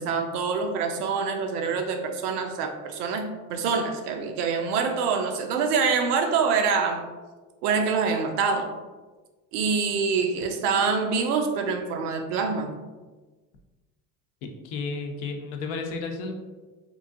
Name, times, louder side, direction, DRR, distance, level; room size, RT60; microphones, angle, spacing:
voice 1, 0.0-7.0 7.6-8.7 9.5-12.7, right 5 dB, 85° right, 5 dB, 0.6 m, -25 dB
voice 2, 14.4-16.3, left 4 dB, 70° left, 4 dB, 0.6 m, -32 dB
3.0 x 2.5 x 2.5 m, 1.3 s
supercardioid pair, 85°, 45 cm